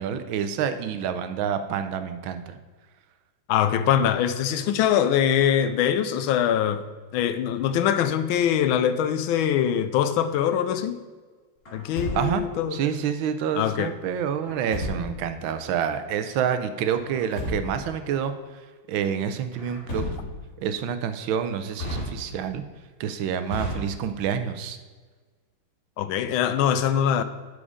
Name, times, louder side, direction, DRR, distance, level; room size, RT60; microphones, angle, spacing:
voice 1, 0.0-2.6 12.1-12.4 12.7-18.3 18.9-20.0 20.6-22.6 23.0-24.8, right 8 dB, 80° right, 1.5 m, -28 dB
voice 2, 3.5-6.8 7.1-11.0 11.7-12.8 13.5-13.9 26.0-27.2, left 9 dB, 90° left, 1.4 m, -23 dB
Truck, 11.6-12.6 14.4-15.3 17.0-17.9 19.5-20.6 21.7-22.6 23.5-24.3, left 1 dB, 45° left, 2.9 m, -33 dB
11.0 x 5.0 x 5.0 m
omnidirectional pair, 2.2 m